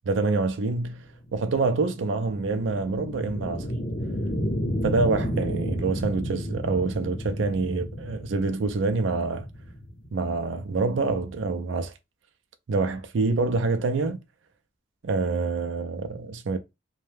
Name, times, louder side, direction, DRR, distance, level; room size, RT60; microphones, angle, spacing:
voice 1, 0.1-1.1 1.3-3.7 4.8-9.5 10.1-11.9 12.7-14.2 15.0-16.6, right 3 dB, 65° right, 0.4 m, -26 dB
sound 1, 0.9-11.6, equal, 35° left, 0.7 m, -32 dB
2.6 x 2.2 x 3.2 m
head